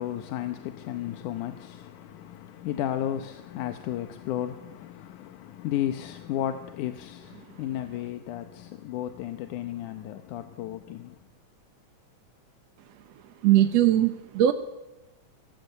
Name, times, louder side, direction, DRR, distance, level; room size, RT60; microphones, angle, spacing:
voice 1, 0.0-11.2, left 11 dB, 85° left, 2.5 m, -33 dB
voice 2, 13.4-14.5, right 12 dB, 65° right, 2.0 m, -20 dB
23.5 x 18.0 x 8.0 m
omnidirectional pair, 3.4 m